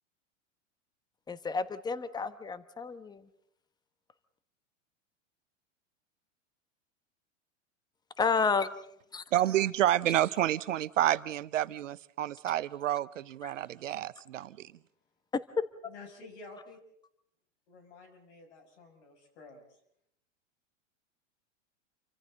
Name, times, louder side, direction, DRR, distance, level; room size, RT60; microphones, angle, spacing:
voice 1, 1.3-3.2 8.2-8.7 9.1-9.2 13.4-13.5, left 5 dB, 10° left, 13 dB, 1.1 m, -31 dB
voice 2, 9.3-14.7, right 12 dB, 75° right, 18 dB, 0.8 m, -29 dB
voice 3, 15.8-16.8 17.7-19.6, left 3 dB, 60° left, 3 dB, 7.0 m, -51 dB
29.0 x 24.5 x 4.0 m, 0.72 s
hypercardioid pair, 100°, 38 cm